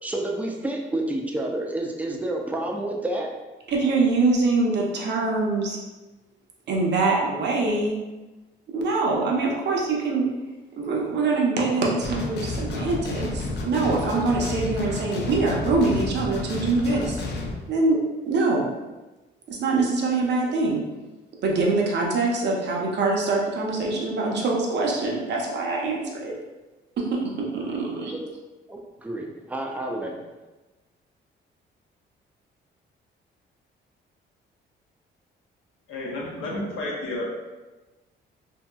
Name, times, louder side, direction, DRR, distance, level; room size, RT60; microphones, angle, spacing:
voice 1, 0.0-3.3 28.1-28.3 28.7-30.2, right 1 dB, 5° right, 1 dB, 0.4 m, -29 dB
voice 2, 3.7-5.8 6.7-8.0 8.7-10.3 10.8-17.2 17.7-18.0 18.3-18.6 19.5-20.8 21.4-26.4 27.0-28.1, right 3 dB, 60° right, -2 dB, 0.7 m, -24 dB
sound 1, 12.0-17.5, left 2 dB, 60° left, 0.6 m, -31 dB
voice 3, 35.9-37.2, left 1 dB, 85° left, -4 dB, 0.9 m, -31 dB
2.8 x 2.7 x 2.3 m, 1.1 s
cardioid pair, 90°, 20 cm